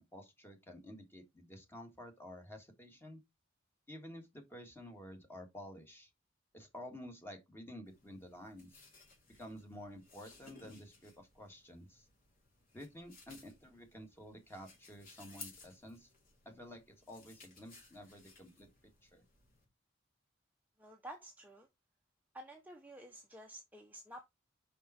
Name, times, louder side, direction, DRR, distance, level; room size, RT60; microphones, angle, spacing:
voice 1, 0.0-3.2 3.9-6.1 6.5-8.8 9.4-12.1 12.7-16.1 16.5-18.7 19.0-19.2, equal, 10° left, 1.8 m, -51 dB
sound 1, 7.9-19.6, left 3 dB, 45° left, 3.2 m, -59 dB
voice 2, 20.8-21.7 22.3-24.2, right 1 dB, 10° right, 0.9 m, -51 dB
5.5 x 5.3 x 4.2 m
head